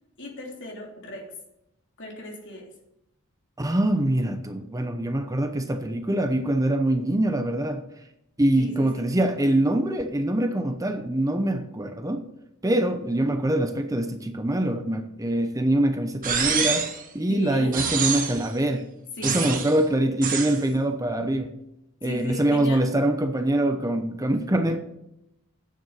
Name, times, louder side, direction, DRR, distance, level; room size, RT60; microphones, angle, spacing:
voice 1, 0.2-1.3 2.0-2.7 8.6-9.0 17.3-17.8 19.2-19.6 22.0-22.8, left 1 dB, 55° left, -1 dB, 3.2 m, -36 dB
voice 2, 3.6-7.8 8.4-12.2 12.6-16.9 17.1-18.8 19.2-21.5 22.0-24.8, right 1 dB, 15° right, 7 dB, 0.7 m, -24 dB
sound 1, 16.2-17.0 17.7-18.5 19.2-19.8 20.2-20.6, right 6 dB, 40° right, 1.6 m, -26 dB
9.3 x 7.8 x 7.1 m, 0.85 s
head